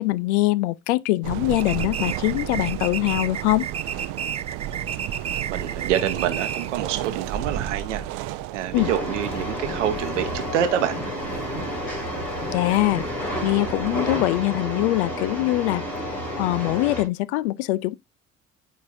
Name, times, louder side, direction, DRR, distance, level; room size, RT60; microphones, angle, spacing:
voice 1, 0.0-3.7 8.7-8.9 12.5-13.0 13.4-15.8 16.4-17.9, left 18 dB, 65° left, 0.5 m, -23 dB
sound 1, 1.2-14.0, right 12 dB, 55° right, 0.6 m, -34 dB
sound 2, 1.6-6.8, right 8 dB, 20° right, 0.3 m, -32 dB
voice 2, 5.5-11.0, right 9 dB, 70° right, 1.1 m, -27 dB
sound 3, 8.7-17.0, equal, 80° left, 3.0 m, -30 dB
11.0 x 4.6 x 2.6 m
figure-of-eight pair, 50°, 37 cm